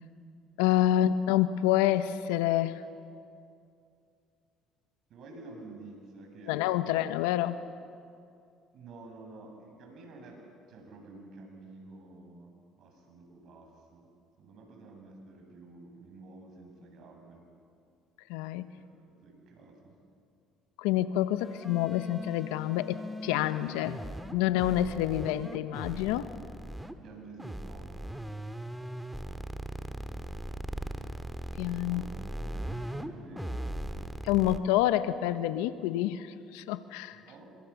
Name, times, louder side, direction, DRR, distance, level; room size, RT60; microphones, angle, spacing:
voice 1, 0.6-2.8 6.5-7.6 18.3-18.7 20.8-24.0 24.3-26.3 31.6-32.0 34.2-37.2, left 13 dB, 85° left, 12 dB, 1.0 m, -28 dB
voice 2, 5.1-6.6 6.8-7.0 8.7-10.4 10.7-12.5 12.8-14.1 14.4-17.4 18.8-20.0 27.0-28.3 31.8-33.8 37.1-37.6, right 3 dB, 60° right, 2 dB, 7.7 m, -50 dB
sound 1, 21.4-26.9 27.4-33.1 33.4-34.6, right 1 dB, 5° right, 2.0 m, -39 dB
29.5 x 25.0 x 7.2 m, 2.4 s
supercardioid pair, 75°, 0 cm